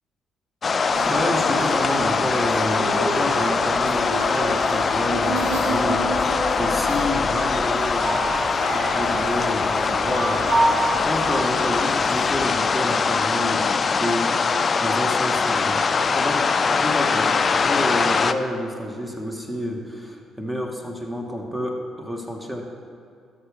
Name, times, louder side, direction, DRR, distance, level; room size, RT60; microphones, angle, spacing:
sound 1, 0.6-18.3, left 5 dB, 40° left, 0.4 m, -22 dB
sound 2, 0.9-12.4, right 2 dB, 85° right, 1.8 m, -29 dB
voice 1, 1.0-8.2 8.7-22.6, equal, 10° right, 2 dB, 1.7 m, -29 dB
13.0 x 8.0 x 3.6 m, 2.3 s
hypercardioid pair, 50°, 0 cm